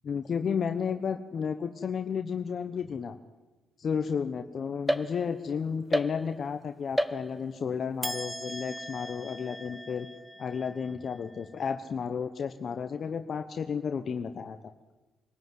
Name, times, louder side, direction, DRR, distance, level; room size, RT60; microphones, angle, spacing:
voice 1, 0.0-3.1 3.8-10.1 10.4-14.6, left 6 dB, 50° left, 7 dB, 1.1 m, -32 dB
sound 1, 4.9-5.5 5.9-6.6 7.0-7.6 8.0-11.5, equal, 5° right, 1.2 m, -35 dB
25.0 x 14.0 x 9.5 m, 1.2 s
cardioid pair, 90°, 0 cm